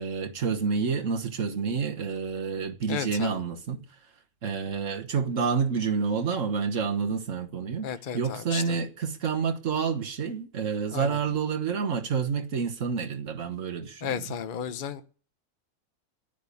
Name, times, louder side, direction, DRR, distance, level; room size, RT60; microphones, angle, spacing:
voice 1, 0.0-3.8 4.4-7.9 8.1-14.3, right 5 dB, 60° right, 1.6 m, -29 dB
voice 2, 2.9-3.4 7.8-8.8 10.9-11.2 14.0-15.0, left 8 dB, 40° left, 0.8 m, -34 dB
10.5 x 10.0 x 8.4 m
omnidirectional pair, 1.6 m